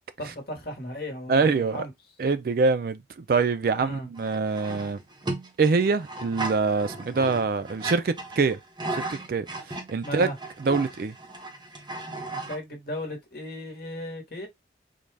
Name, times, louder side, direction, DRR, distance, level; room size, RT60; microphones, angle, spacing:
voice 1, 0.2-1.9 3.8-4.1 10.0-10.3 12.3-14.5, left 1 dB, 55° left, 1.1 m, -36 dB
voice 2, 1.3-1.9 2.2-5.0 5.6-8.6 8.9-10.3 10.6-11.2, right 4 dB, 50° right, 0.3 m, -25 dB
sound 1, 4.1-12.6, right 2 dB, 25° right, 0.8 m, -36 dB
3.8 x 2.3 x 3.2 m
head